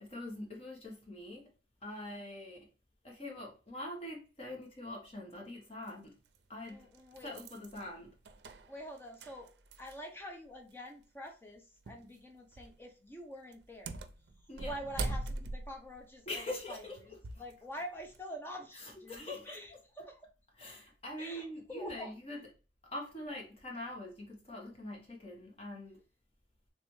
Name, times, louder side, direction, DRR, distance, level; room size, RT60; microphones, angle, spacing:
voice 1, 0.0-1.5 1.8-2.7 3.0-6.1 6.5-6.9 7.2-8.1 14.5-14.7 16.3-17.0 17.3-17.4 18.7-19.6 20.6-22.4 22.9-26.0, left 1 dB, 35° left, 1.2 m, -43 dB
sound 1, 5.9-6.0 6.7-10.2 10.5-10.6 11.9-12.1 12.5-12.8 13.5-17.5 18.0-18.2, right 2 dB, 75° right, 0.4 m, -42 dB
voice 2, 6.6-7.4 7.7-7.9 8.7-14.0 14.6-20.2 21.2-22.1, equal, 15° left, 0.6 m, -46 dB
3.3 x 3.3 x 3.1 m
head